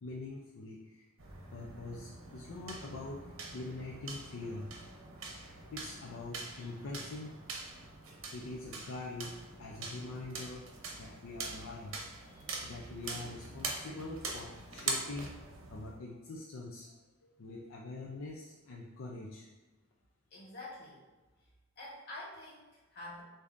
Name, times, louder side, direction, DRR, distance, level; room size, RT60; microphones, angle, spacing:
voice 1, 0.0-1.1 1.5-4.7 5.4-7.4 8.3-15.4 15.7-17.0 17.4-19.5, left 2 dB, 80° left, -2 dB, 0.5 m, -44 dB
sound 1, 1.2-16.0, right 3 dB, 75° right, 0.8 m, -43 dB
voice 2, 20.3-21.0 21.8-23.2, left 2 dB, 55° left, -5 dB, 1.5 m, -47 dB
6.7 x 2.7 x 2.5 m, 1.2 s
head